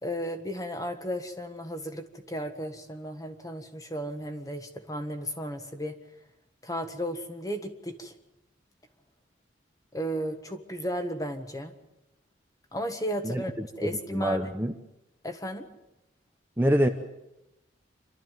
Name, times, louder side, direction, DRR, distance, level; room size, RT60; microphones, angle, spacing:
voice 1, 0.0-6.0 6.6-8.1 9.9-11.7 12.7-14.4 15.2-15.7, equal, 20° left, 7 dB, 1.5 m, -34 dB
voice 2, 13.2-14.7 16.6-16.9, equal, 10° right, 5 dB, 0.8 m, -26 dB
26.5 x 13.0 x 9.3 m, 0.93 s
head